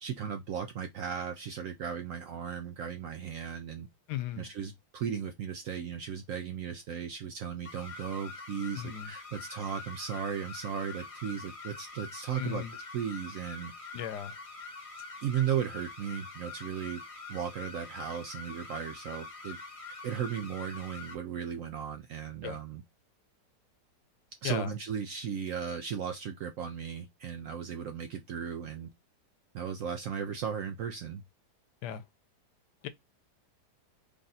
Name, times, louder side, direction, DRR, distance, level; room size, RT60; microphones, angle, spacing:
voice 1, 0.0-3.9 4.4-12.6 12.9-13.7 15.2-17.0 17.3-19.6 20.0-22.8 24.4-28.9 29.5-31.2, right 8 dB, 70° right, 0.8 m, -36 dB
voice 2, 4.1-4.5 8.8-9.1 12.3-12.7 13.9-14.3 22.4-22.6 24.4-24.7 31.8-32.0 32.8-32.9, left 11 dB, 85° left, 1.2 m, -36 dB
sound 1, 7.7-21.2, left 3 dB, 50° left, 0.4 m, -45 dB
3.4 x 2.6 x 4.0 m
omnidirectional pair, 1.8 m